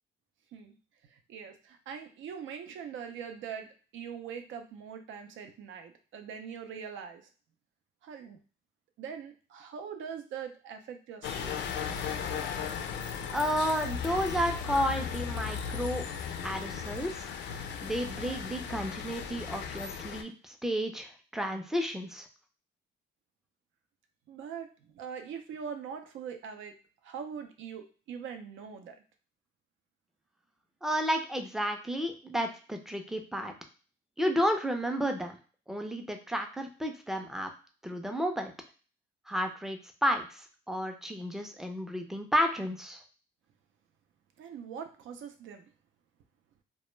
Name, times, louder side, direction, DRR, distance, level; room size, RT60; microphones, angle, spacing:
voice 1, 1.0-7.3 8.0-8.4 9.0-11.6 24.3-26.8 27.0-29.0 44.4-45.7, right 7 dB, 75° right, 6 dB, 0.5 m, -42 dB
sound 1, 11.2-20.2, left 7 dB, 65° left, 0.4 m, -36 dB
voice 2, 13.3-16.1 16.4-17.3 17.8-22.3 30.8-33.5 34.2-35.4 35.7-37.5 37.8-38.5 39.3-43.0, equal, ahead, 4 dB, 0.4 m, -32 dB
2.1 x 2.1 x 3.1 m, 0.37 s
cardioid pair, 90°, 20 cm